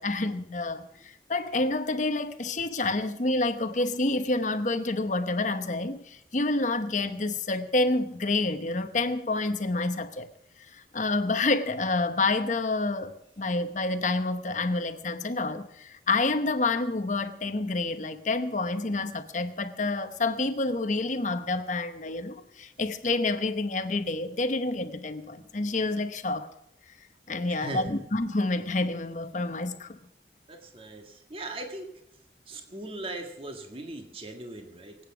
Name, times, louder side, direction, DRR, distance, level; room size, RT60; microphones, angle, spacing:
voice 1, 0.0-10.3 10.7-26.5 27.3-30.0, left 2 dB, 45° left, 9 dB, 1.0 m, -28 dB
voice 2, 27.5-28.0 30.5-31.9 32.5-35.0, right 2 dB, 30° right, 4 dB, 1.8 m, -39 dB
23.5 x 8.9 x 6.0 m, 0.76 s
head